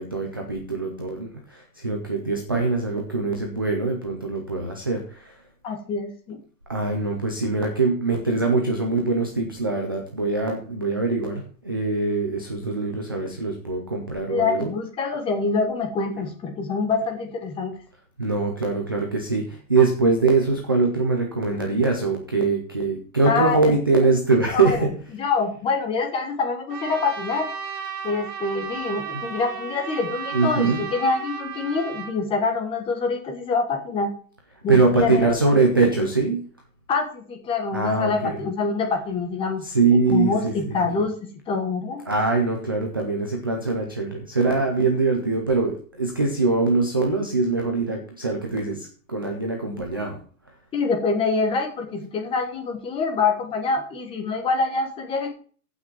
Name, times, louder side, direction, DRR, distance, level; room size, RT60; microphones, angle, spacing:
voice 1, 0.0-5.3 6.7-14.7 18.2-24.9 29.1-29.2 30.3-30.8 34.7-36.4 37.7-38.4 39.6-41.0 42.1-50.2, right 3 dB, 15° right, 2 dB, 0.4 m, -23 dB
voice 2, 5.6-6.4 14.3-17.7 23.2-23.7 24.5-24.9 25.1-27.5 28.0-34.1 34.6-35.5 36.9-39.7 40.1-41.1 41.5-42.0 50.7-55.3, left 4 dB, 10° left, 4 dB, 1.2 m, -25 dB
Trumpet, 26.7-32.2, right 6 dB, 75° right, 3.2 m, -34 dB
15.0 x 6.0 x 4.5 m, 0.43 s
hypercardioid pair, 165°, 46 cm